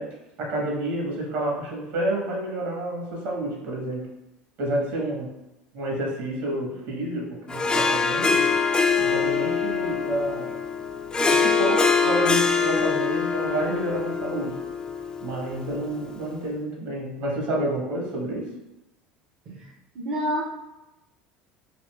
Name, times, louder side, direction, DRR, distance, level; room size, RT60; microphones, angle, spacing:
voice 1, 0.0-4.1 4.6-5.4 5.7-8.5 9.0-10.6 11.3-14.6 15.2-18.5, right 1 dB, 65° right, -1 dB, 1.1 m, -29 dB
Harp, 7.5-16.1, left 5 dB, 20° left, 0.3 m, -24 dB
voice 2, 19.9-20.4, equal, 50° right, -3 dB, 0.6 m, -28 dB
3.5 x 2.6 x 2.3 m, 0.94 s
hypercardioid pair, 75°, 4 cm